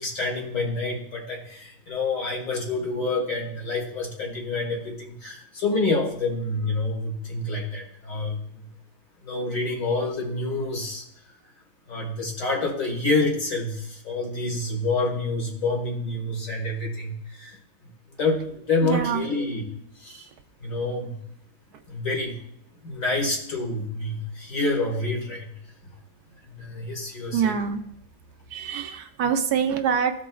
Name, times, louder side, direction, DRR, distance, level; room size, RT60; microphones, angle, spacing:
voice 1, 0.0-8.7 9.2-11.0 11.9-17.6 18.2-19.7 20.0-20.3 20.6-21.2 21.9-22.4 22.8-25.5 26.5-27.6, left 2 dB, 55° left, -1 dB, 2.1 m, -28 dB
voice 2, 18.8-19.2 27.3-27.8 28.5-30.1, right 7 dB, 80° right, 7 dB, 1.2 m, -25 dB
15.0 x 5.0 x 2.3 m, 0.71 s
omnidirectional pair, 1.7 m